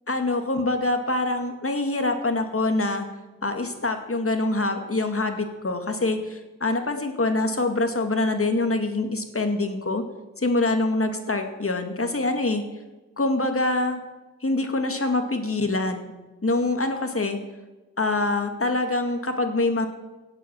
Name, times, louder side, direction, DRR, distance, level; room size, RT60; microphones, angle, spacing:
voice 1, 0.1-3.1 3.4-10.0 10.4-12.6 13.2-14.0 14.4-16.1 16.4-17.4 18.0-19.9, left 2 dB, 50° left, 6 dB, 2.3 m, -25 dB
16.5 x 8.7 x 8.8 m, 1.1 s
wide cardioid pair, 75°, 29 cm